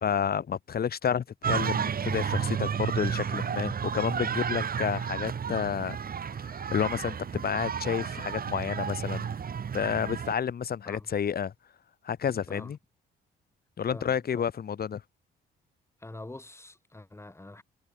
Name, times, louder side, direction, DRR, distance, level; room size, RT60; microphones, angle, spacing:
voice 1, 0.0-6.0 6.4-9.3 9.7-11.5 12.0-12.8 13.8-15.0, left 8 dB, 50° left, 2.6 m, -30 dB
sound 1, 1.4-10.4, right 7 dB, 50° right, 4.5 m, -32 dB
voice 2, 13.9-14.4 16.0-17.6, left 2 dB, 15° left, 4.8 m, -45 dB
cardioid pair, 90°, 20 cm